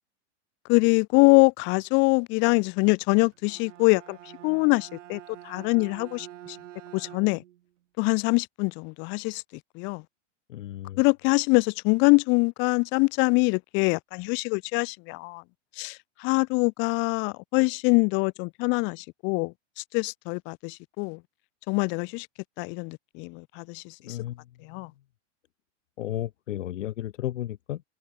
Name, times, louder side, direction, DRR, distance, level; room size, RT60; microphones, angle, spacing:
voice 1, 0.7-4.2 4.4-6.6 6.9-7.4 8.0-9.4 9.8-10.0 11.0-15.4 15.8-19.5 19.9-21.2 21.7-22.3 22.6-24.2 24.6-24.9, left 30 dB, 35° left, 0.5 m, -24 dB
Bowed string instrument, 3.3-7.6, right 13 dB, 80° right, 2.0 m, -46 dB
voice 2, 10.5-11.0 24.0-24.4 24.7-24.8 26.0-27.8, left 13 dB, 80° left, 1.5 m, -33 dB
hypercardioid pair, 130°, 37 cm